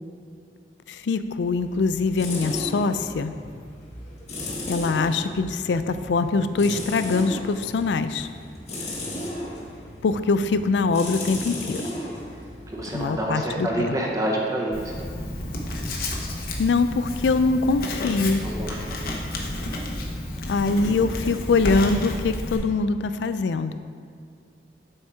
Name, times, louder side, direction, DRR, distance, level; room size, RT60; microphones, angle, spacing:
voice 1, 0.9-3.3 4.7-8.3 10.0-11.8 12.9-14.0 16.6-18.4 20.5-23.7, left 4 dB, 85° left, 11 dB, 0.4 m, -23 dB
sound 1, 1.2-13.9, left 1 dB, 40° left, 1.2 m, -36 dB
voice 2, 12.7-15.1 18.4-19.2, right 1 dB, 20° right, -2 dB, 0.7 m, -28 dB
Writing, 14.7-22.6, left 1 dB, 55° left, 0.9 m, -31 dB
7.7 x 4.4 x 4.7 m, 2.2 s
head